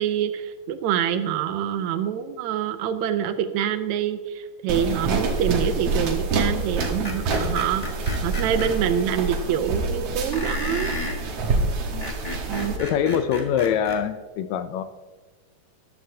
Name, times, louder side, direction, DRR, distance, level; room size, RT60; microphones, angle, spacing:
voice 1, 0.0-7.8 8.2-10.9 12.5-12.8, right 9 dB, 75° right, 10 dB, 1.9 m, -26 dB
sound 1, 4.7-12.8, right 3 dB, 60° right, 2.1 m, -27 dB
Screech, 6.8-8.7 10.3-11.2 11.8-14.0, left 2 dB, 30° left, 0.7 m, -33 dB
voice 2, 12.8-14.8, left 8 dB, 75° left, 11 dB, 1.8 m, -24 dB
14.0 x 12.0 x 2.8 m, 1.3 s
omnidirectional pair, 3.6 m